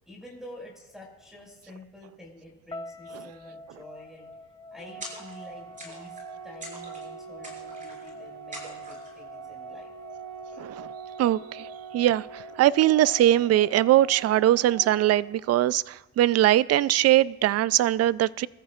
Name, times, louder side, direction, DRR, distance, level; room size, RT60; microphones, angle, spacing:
voice 1, 0.1-4.3 4.7-6.2 6.4-9.9, left 1 dB, ahead, 5.6 m, -48 dB
sound 1, 2.7-14.8, left 3 dB, 15° left, 0.6 m, -47 dB
Organ, 4.8-15.8, right 8 dB, 80° right, 2.9 m, -44 dB
sound 2, 5.0-5.5 5.8-6.3 6.6-7.1 7.4-8.1 8.5-9.1, right 1 dB, 25° right, 5.2 m, -43 dB
voice 2, 10.6-10.9 11.2-11.7 11.9-18.5, right 13 dB, 55° right, 0.4 m, -21 dB
24.5 x 14.0 x 2.4 m
cardioid pair, 90°, 30 cm